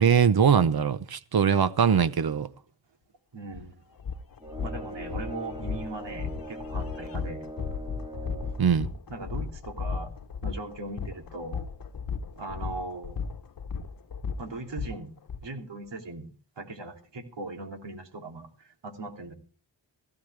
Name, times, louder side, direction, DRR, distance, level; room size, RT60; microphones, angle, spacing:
voice 1, 0.0-2.5 8.6-8.9, right 7 dB, 55° right, 0.9 m, -22 dB
voice 2, 3.3-3.7 4.6-7.5 9.1-10.1 10.4-11.6 12.4-13.3 14.4-15.1 15.4-16.3 16.6-19.4, right 2 dB, 75° right, 3.2 m, -39 dB
sound 1, 3.5-3.6 4.0-15.4, left 5 dB, 50° left, 1.1 m, -35 dB
sound 2, 4.4-8.7, right 1 dB, 10° right, 2.2 m, -41 dB
17.5 x 15.0 x 3.4 m
wide cardioid pair, 90°, 43 cm